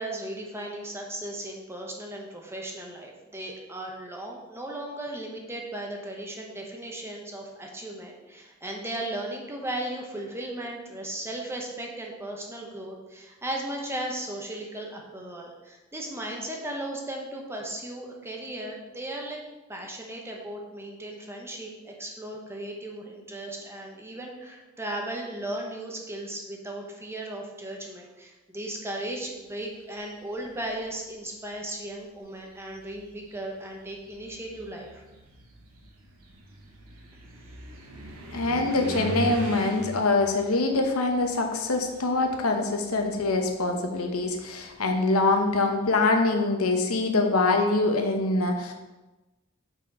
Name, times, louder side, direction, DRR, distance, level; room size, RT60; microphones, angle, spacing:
voice 1, 0.0-19.4 19.7-35.0, right 1 dB, 10° right, 0 dB, 1.0 m, -36 dB
sound 1, 30.3-30.8 31.8-31.9 32.5-42.4 42.7-45.3, right 1 dB, 85° right, 1.2 m, -40 dB
voice 2, 38.3-48.7, left 2 dB, 85° left, 4 dB, 0.9 m, -24 dB
6.1 x 4.3 x 5.3 m, 1.1 s
head